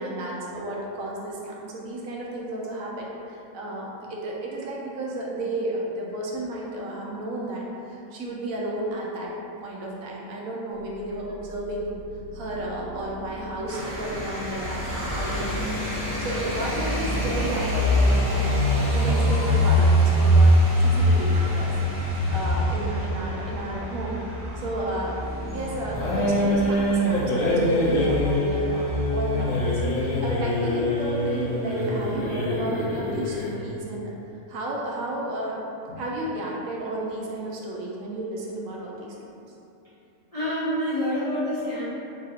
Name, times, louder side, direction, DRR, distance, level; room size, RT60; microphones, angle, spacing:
voice 1, 0.0-9.3 9.6-11.9 12.3-15.7 16.0-20.5 20.8-21.7 22.3-24.2 24.6-25.3 25.5-34.1 34.5-35.6 36.0-39.2, right 1 dB, 75° right, -3 dB, 1.0 m, -32 dB
sound 1, 10.7-27.9, equal, 55° right, 1.5 m, -42 dB
sound 2, 13.7-31.0 31.3-32.1, equal, 10° right, 0.7 m, -24 dB
sound 3, 25.9-33.6, left 1 dB, 75° left, 1.2 m, -25 dB
voice 2, 40.3-41.8, equal, 35° left, -12 dB, 0.6 m, -27 dB
3.6 x 2.4 x 4.1 m, 2.9 s
omnidirectional pair, 1.5 m